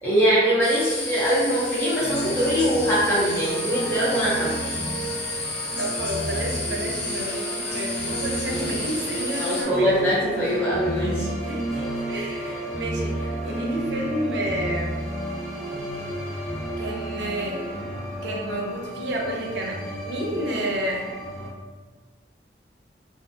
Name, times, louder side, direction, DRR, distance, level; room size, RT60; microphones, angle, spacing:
voice 1, 0.0-4.6 8.5-8.7 9.4-11.3, equal, 15° left, -10 dB, 0.5 m, -22 dB
sound 1, 0.6-9.6, left 2 dB, 70° left, 0.8 m, -31 dB
sound 2, 2.0-21.5, right 1 dB, 45° left, 1.0 m, -32 dB
voice 2, 5.8-10.2 11.4-11.7 12.1-14.9 16.8-17.7 18.2-21.1, right 1 dB, 80° right, 0 dB, 0.5 m, -30 dB
2.5 x 2.4 x 2.5 m, 1.3 s
head